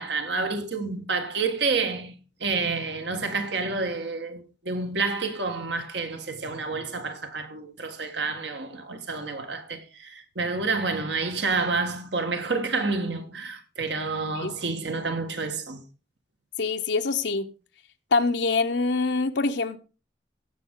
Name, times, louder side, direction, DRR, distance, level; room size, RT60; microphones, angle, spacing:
voice 1, 0.0-15.8, right 4 dB, 75° right, 1.7 m, -29 dB
voice 2, 16.6-17.5 18.1-19.8, left 3 dB, 75° left, 0.7 m, -24 dB
16.5 x 6.6 x 3.7 m
head